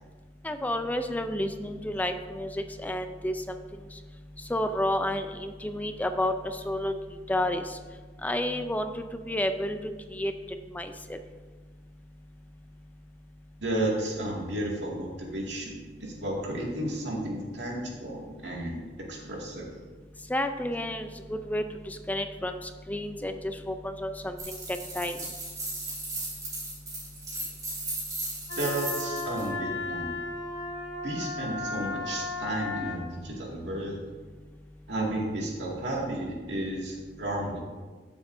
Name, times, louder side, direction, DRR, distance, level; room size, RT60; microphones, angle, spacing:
voice 1, 0.4-3.6 4.5-6.9 7.3-7.8 8.2-10.3 10.7-11.2 20.3-25.2, left 1 dB, 10° left, 8 dB, 0.4 m, -31 dB
voice 2, 13.6-18.8 19.1-19.8 28.6-30.1 31.0-34.0 34.9-37.6, right 1 dB, 85° right, -2 dB, 2.1 m, -33 dB
sound 1, 24.4-29.5, right 2 dB, 20° right, 3.1 m, -36 dB
Wind instrument woodwind instrument, 28.5-33.0, left 3 dB, 60° left, 2.1 m, -35 dB
14.0 x 7.1 x 2.7 m, 1.4 s
head